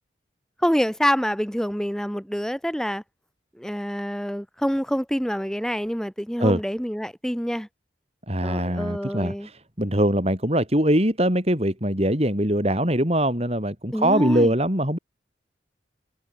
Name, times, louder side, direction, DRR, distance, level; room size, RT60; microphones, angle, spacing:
voice 1, 0.6-3.0 3.6-7.7 8.4-9.5 13.9-14.5, equal, 5° left, 4.4 m, -26 dB
voice 2, 8.3-15.0, right 1 dB, 35° right, 7.7 m, -22 dB
head